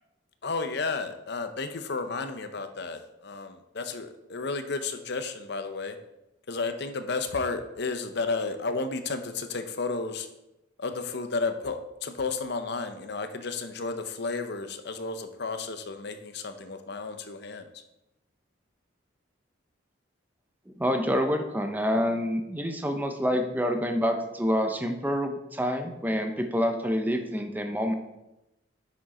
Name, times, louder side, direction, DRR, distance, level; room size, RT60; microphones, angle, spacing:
voice 1, 0.4-6.0 6.5-10.3 10.8-17.8, left 4 dB, 55° left, 8 dB, 0.8 m, -32 dB
voice 2, 20.8-27.9, equal, 10° right, 5 dB, 0.8 m, -27 dB
9.8 x 6.2 x 4.3 m, 0.93 s
head